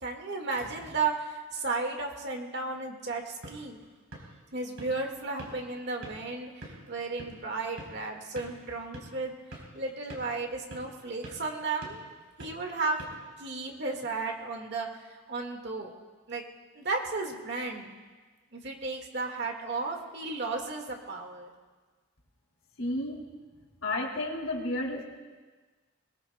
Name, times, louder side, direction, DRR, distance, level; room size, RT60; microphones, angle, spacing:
voice 1, 0.0-3.8 4.5-9.4 9.7-13.0 13.4-14.9 15.3-15.9 16.3-16.4 16.7-17.9 18.5-21.5, right 3 dB, 55° right, 2 dB, 1.9 m, -34 dB
sound 1, 3.1-13.9, right 1 dB, 85° right, 4.2 m, -49 dB
voice 2, 22.8-23.2 23.8-25.0, left 1 dB, 85° left, -1 dB, 3.0 m, -31 dB
22.0 x 22.0 x 2.3 m, 1.4 s
head